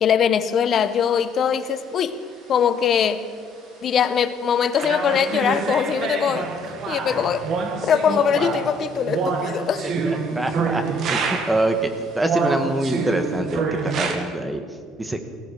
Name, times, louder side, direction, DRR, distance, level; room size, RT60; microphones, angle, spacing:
voice 1, 0.0-2.1 2.5-3.2 3.8-6.5 6.9-7.4 7.9-9.9, left 7 dB, 40° left, 11 dB, 0.8 m, -21 dB
sound 1, 0.8-13.4, right 2 dB, 65° right, 5.4 m, -51 dB
sound 2, 4.7-11.7 12.2-14.2, right 5 dB, 50° right, 1.6 m, -26 dB
voice 2, 9.9-14.6 15.0-15.2, right 1 dB, 10° right, 7 dB, 1.3 m, -25 dB
18.5 x 14.5 x 4.8 m, 2.1 s
cardioid pair, 130°, 0 cm